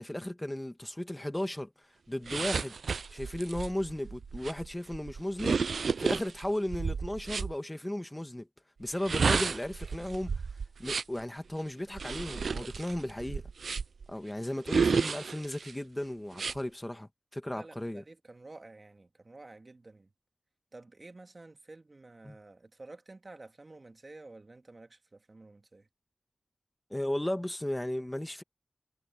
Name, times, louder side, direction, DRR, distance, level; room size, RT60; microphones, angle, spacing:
voice 1, 0.0-1.7 2.1-2.8 3.1-5.6 6.0-8.5 8.8-10.3 10.8-13.4 14.1-18.0 22.2-22.4 26.9-28.4, left 1 dB, 15° left, 1.9 m, -35 dB
sound 1, 2.3-7.5 8.9-11.2 11.9-14.1 14.7-15.7 16.3-16.6, right 5 dB, 85° right, 0.5 m, -32 dB
voice 2, 17.5-20.1 20.7-25.9, right 2 dB, 45° right, 2.3 m, -51 dB
cardioid pair, 45°, 0 cm